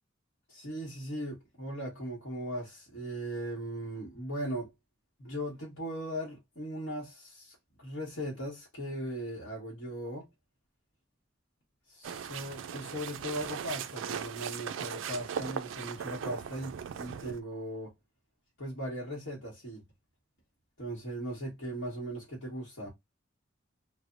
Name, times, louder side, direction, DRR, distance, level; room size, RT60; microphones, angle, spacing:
voice 1, 0.5-4.7 5.2-10.3 11.9-17.9 18.6-19.8 20.8-22.9, equal, 65° left, 1.1 m, -38 dB
sound 1, 12.0-17.4, right 8 dB, 75° right, 0.3 m, -38 dB
3.2 x 2.1 x 2.4 m
head